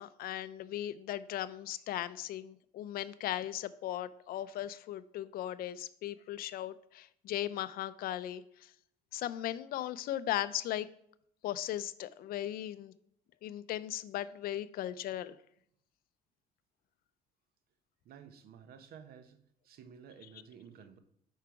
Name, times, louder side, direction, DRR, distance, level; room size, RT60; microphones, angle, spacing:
voice 1, 0.0-8.7 9.1-10.9 11.4-12.9 13.4-15.4, left 12 dB, 60° left, 16 dB, 0.4 m, -37 dB
voice 2, 18.0-21.0, right 7 dB, 65° right, 9 dB, 0.7 m, -53 dB
5.0 x 4.6 x 4.6 m, 0.70 s
cardioid pair, 110°, 17 cm